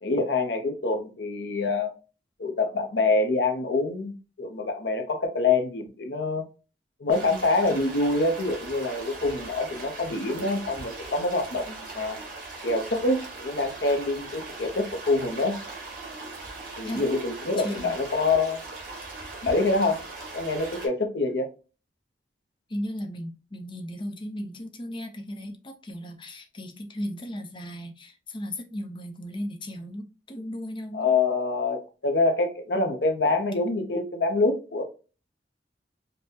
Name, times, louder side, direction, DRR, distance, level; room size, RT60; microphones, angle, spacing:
voice 1, 0.0-1.9 2.4-6.4 7.0-12.2 12.6-15.6 16.8-18.6 19.4-20.0 20.3-21.5 30.9-34.8, left 3 dB, 75° left, 0.7 m, -26 dB
sound 1, 7.1-20.9, right 3 dB, 55° right, 1.7 m, -40 dB
voice 2, 17.6-17.9 21.2-21.3 22.7-31.1, equal, 30° left, 0.6 m, -36 dB
5.2 x 2.2 x 2.7 m
head